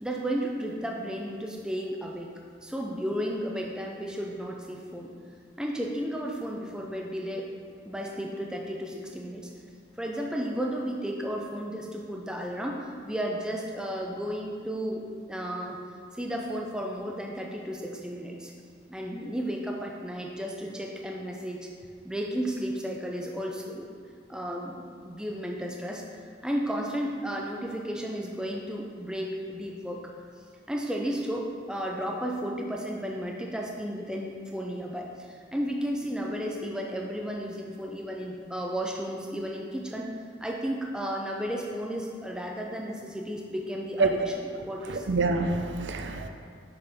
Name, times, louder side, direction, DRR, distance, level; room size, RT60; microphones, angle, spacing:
voice 1, 0.0-5.1 5.6-7.5 7.9-9.5 10.0-15.8 16.1-18.5 18.9-21.7 22.0-23.9 24.3-30.0 30.7-40.1 40.4-45.1, equal, 5° right, -1 dB, 0.5 m, -33 dB
voice 2, 44.9-46.3, right 3 dB, 70° right, 5 dB, 0.5 m, -26 dB
6.6 x 6.0 x 3.5 m, 2.1 s
head